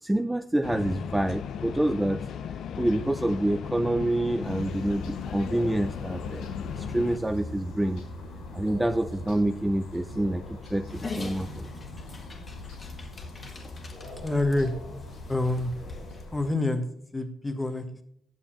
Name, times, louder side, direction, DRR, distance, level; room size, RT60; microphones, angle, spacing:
voice 1, 0.0-2.2 2.8-6.5 6.7-8.0 8.5-11.7, right 1 dB, 10° right, 10 dB, 0.4 m, -27 dB
sound 1, 0.6-7.2, left 7 dB, 70° left, 0.6 m, -36 dB
sound 2, 4.4-16.5, left 2 dB, 85° left, 4.4 m, -41 dB
Dog, 10.9-16.2, left 3 dB, 35° left, 2.0 m, -43 dB
voice 2, 14.2-14.7 15.3-15.7 16.3-16.8 17.1-18.0, left 2 dB, 15° left, 7 dB, 1.4 m, -27 dB
9.1 x 6.9 x 5.9 m, 0.68 s
cardioid pair, 90°, 0 cm